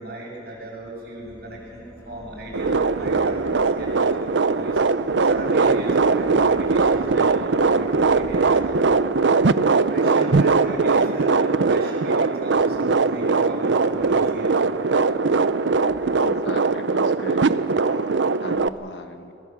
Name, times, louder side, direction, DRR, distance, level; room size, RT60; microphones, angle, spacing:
voice 1, 0.0-4.8 5.2-9.1 9.9-14.5 15.8-16.0, right 1 dB, 60° right, -2 dB, 7.2 m, -36 dB
sound 1, 1.2-9.0, equal, 15° left, 1.7 m, -43 dB
sound 2, 2.5-18.7, right 4 dB, 85° right, 0.6 m, -20 dB
voice 2, 16.2-17.5 17.8-19.3, left 2 dB, 75° left, 7 dB, 1.5 m, -37 dB
22.5 x 20.0 x 7.3 m, 2.5 s
head